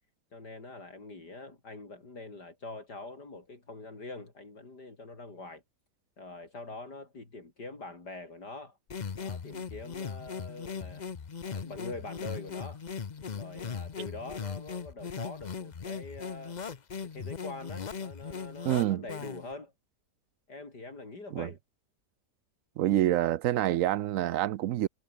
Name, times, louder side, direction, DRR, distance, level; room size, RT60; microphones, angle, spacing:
voice 1, 0.3-5.6 6.2-8.8 9.1-11.1 11.5-12.8 13.3-16.6 17.0-19.7 20.5-21.6, left 3 dB, 75° left, 5.3 m, -44 dB
sound 1, 8.9-19.5, left 6 dB, 35° left, 0.7 m, -39 dB
voice 2, 18.6-19.0 21.3-21.5 22.8-24.9, right 13 dB, 70° right, 0.8 m, -27 dB
omnidirectional pair, 1.8 m